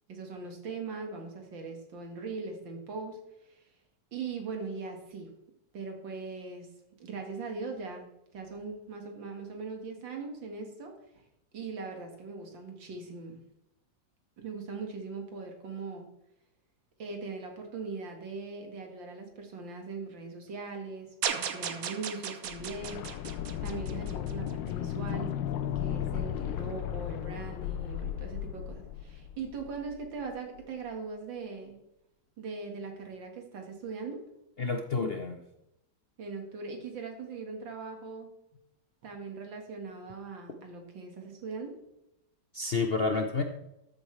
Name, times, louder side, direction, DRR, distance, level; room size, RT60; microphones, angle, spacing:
voice 1, 0.1-3.2 3.5-3.6 4.1-5.3 5.7-6.7 7.0-8.1 8.3-10.9 11.5-13.4 14.4-16.1 17.0-23.0 23.6-25.4 25.8-31.8 32.4-34.2 36.2-38.3 39.0-41.8, right 4 dB, 85° right, 3 dB, 2.5 m, -40 dB
sound 1, 21.2-24.5, right 8 dB, 55° right, 1.1 m, -36 dB
sound 2, 22.5-30.3 30.6-30.7, left 10 dB, 80° left, 1.3 m, -35 dB
voice 2, 34.6-35.4 42.5-43.4, left 4 dB, 50° left, 4 dB, 0.7 m, -29 dB
13.5 x 8.0 x 3.3 m, 0.86 s
omnidirectional pair, 2.0 m